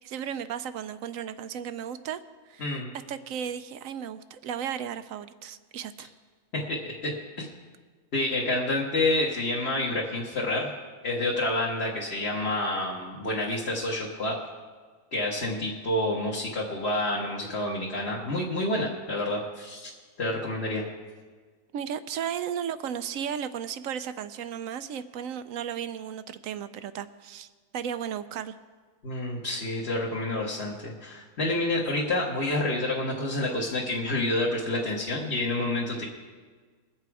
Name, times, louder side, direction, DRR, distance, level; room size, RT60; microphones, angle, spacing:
voice 1, 0.0-2.2 2.5-6.1 21.7-27.5 27.7-28.5, right 8 dB, 70° right, 12 dB, 0.9 m, -35 dB
voice 2, 2.6-2.9 6.5-7.1 7.4-7.5 8.1-10.7 11.0-14.4 15.1-19.9 20.2-20.8 29.0-36.0, left 2 dB, 45° left, -5 dB, 1.7 m, -28 dB
21.5 x 7.6 x 4.7 m, 1.5 s
omnidirectional pair, 1.6 m